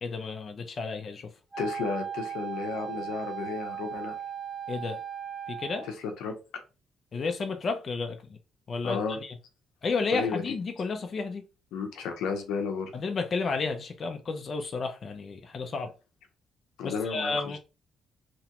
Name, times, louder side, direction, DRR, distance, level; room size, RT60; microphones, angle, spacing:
voice 1, 0.0-1.3 4.7-5.0 5.5-5.9 7.1-8.4 8.7-9.3 9.8-11.4 12.9-15.9 16.8-17.6, left 4 dB, 45° left, 0.5 m, -32 dB
Wind instrument woodwind instrument, 1.5-5.9, right 8 dB, 10° right, 0.8 m, -37 dB
voice 2, 1.6-4.2 5.8-6.3 8.8-9.2 10.1-10.4 11.7-12.9 16.8-17.6, left 5 dB, 90° left, 0.7 m, -33 dB
2.9 x 2.2 x 2.9 m
cardioid pair, 90°, 0 cm